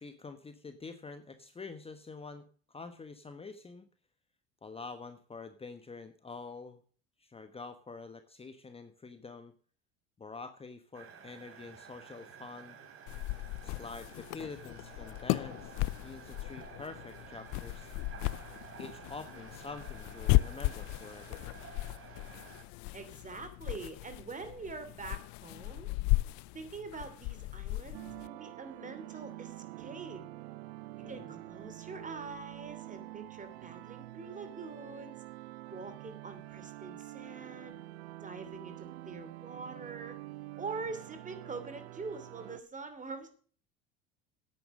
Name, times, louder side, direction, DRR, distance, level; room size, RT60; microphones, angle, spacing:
voice 1, 0.0-3.9 4.6-6.8 7.2-9.5 10.2-12.8 13.6-15.7 16.0-17.9 18.8-21.4 31.0-31.4, left 4 dB, 20° left, 9 dB, 1.1 m, -47 dB
sound 1, 10.9-22.6, right 6 dB, 45° right, 3.3 m, -52 dB
sound 2, 13.1-28.3, left 20 dB, 65° left, 0.6 m, -35 dB
voice 2, 22.9-25.9 26.5-30.2 31.1-35.1 35.7-37.8 38.2-40.2 40.6-43.3, right 4 dB, 25° right, 9 dB, 3.0 m, -44 dB
sound 3, 27.9-42.6, right 18 dB, 80° right, 0.6 m, -47 dB
10.0 x 9.0 x 6.2 m, 0.44 s
supercardioid pair, 90°, 31 cm